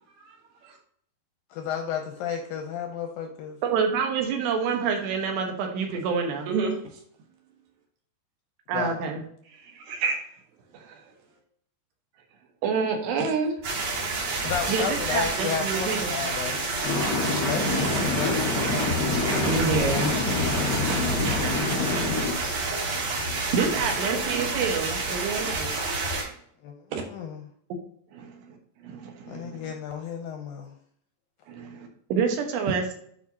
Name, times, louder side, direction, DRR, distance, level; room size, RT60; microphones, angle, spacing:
voice 1, 1.5-3.6 8.7-9.0 14.4-16.6 17.3-18.5 23.6-23.9 26.6-27.4 29.3-30.8, left 7 dB, 80° left, 4 dB, 2.1 m, -33 dB
voice 2, 3.6-6.5 8.7-9.2 10.7-11.0 12.6-13.5 14.7-16.1 20.8-21.0 21.8-22.2 23.3-25.7 28.1-28.6 28.8-29.7 31.5-32.9, right 6 dB, 90° right, 3 dB, 3.5 m, -28 dB
voice 3, 9.6-10.2 13.2-13.3 19.4-20.1 26.9-27.0, right 4 dB, 75° right, 2 dB, 3.4 m, -27 dB
sound 1, 13.6-26.2, right 2 dB, 50° right, 4.1 m, -28 dB
sound 2, 16.8-22.3, left 3 dB, 55° left, 1.0 m, -27 dB
11.0 x 4.8 x 2.8 m, 0.64 s
omnidirectional pair, 4.8 m